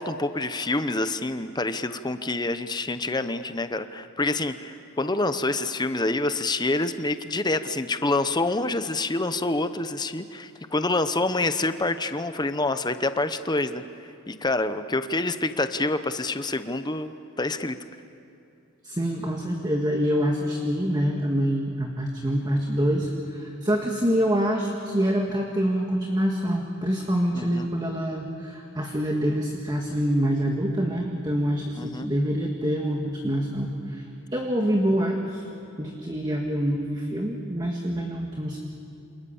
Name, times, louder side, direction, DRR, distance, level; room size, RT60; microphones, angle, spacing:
voice 1, 0.0-13.8 14.3-17.7 27.3-27.7 31.8-32.1, left 2 dB, 20° left, 11 dB, 0.8 m, -27 dB
voice 2, 18.8-34.0 34.3-35.4 35.8-38.6, equal, 20° right, 1 dB, 1.7 m, -26 dB
28.0 x 27.0 x 7.2 m, 2.6 s
head